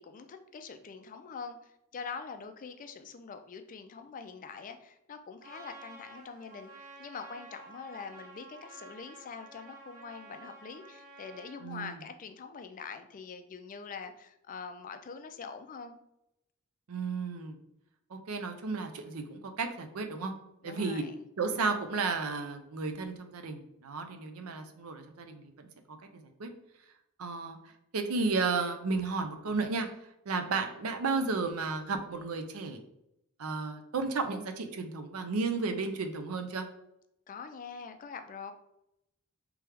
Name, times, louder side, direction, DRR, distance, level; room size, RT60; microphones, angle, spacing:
voice 1, 0.0-6.7 7.0-16.0 20.6-21.1 37.3-38.5, left 5 dB, 40° left, 8 dB, 0.4 m, -44 dB
Trumpet, 5.4-11.6, right 3 dB, 40° right, 1.3 m, -51 dB
voice 2, 11.6-12.0 16.9-17.6 18.1-20.3 20.6-21.0 21.4-25.7 26.2-26.5 27.2-27.6 27.9-29.9 30.3-32.8 33.4-36.7, right 4 dB, 85° right, 6 dB, 0.6 m, -33 dB
3.4 x 3.2 x 3.4 m, 0.83 s
head